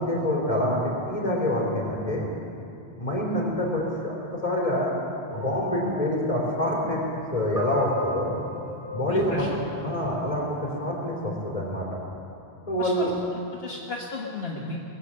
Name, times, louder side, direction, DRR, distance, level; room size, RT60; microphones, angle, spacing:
voice 1, 0.0-2.3 3.0-4.9 5.3-7.0 7.3-8.4 8.9-9.5 9.8-10.5 10.8-11.9 12.7-13.1, left 1 dB, 35° left, -3 dB, 3.6 m, -26 dB
sound 1, 5.3-10.4 11.3-11.5, equal, 60° right, 4.4 m, -37 dB
voice 2, 9.1-9.6 12.8-13.1 13.5-14.8, left 3 dB, 70° left, -3 dB, 1.5 m, -34 dB
21.0 x 8.1 x 7.5 m, 2.7 s
omnidirectional pair, 1.1 m